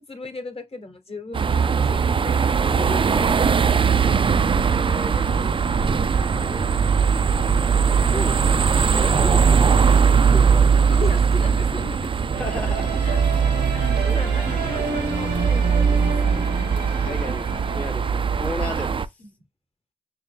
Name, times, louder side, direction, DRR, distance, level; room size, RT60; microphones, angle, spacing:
voice 1, 0.1-2.5 4.1-7.2 10.7-12.2 13.0-16.6 17.0-17.8 19.2-19.3, left 3 dB, 35° left, 1.1 m, -38 dB
sound 1, 1.3-19.0, right 6 dB, 30° right, 0.3 m, -20 dB
voice 2, 2.6-3.4 4.7-6.7 8.1-8.6 8.9-10.7 12.4-13.1 14.0-14.2 14.5-14.7 16.9-17.5 17.7-19.2, left 1 dB, 10° left, 0.7 m, -34 dB
sound 2, 12.3-18.9, right 3 dB, 90° right, 1.3 m, -31 dB
5.5 x 2.0 x 3.2 m
supercardioid pair, 40°, 17 cm